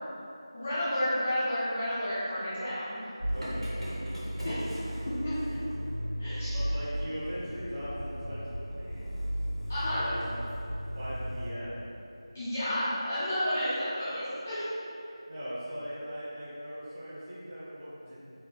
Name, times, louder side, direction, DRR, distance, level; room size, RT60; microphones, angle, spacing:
voice 1, 0.5-3.1 4.4-4.7 5.2-5.3 6.2-6.5 9.7-10.0 12.3-14.7, left 1 dB, 20° left, -13 dB, 0.5 m, -31 dB
Motor vehicle (road) / Engine starting, 3.2-11.5, equal, 75° right, 1.1 m, -35 dB
voice 2, 3.3-3.7 6.5-9.0 9.9-10.2 10.9-11.9 15.3-18.1, equal, 20° right, -14 dB, 1.0 m, -39 dB
3.5 x 2.2 x 3.0 m, 2.8 s
figure-of-eight pair, 170°, 3 cm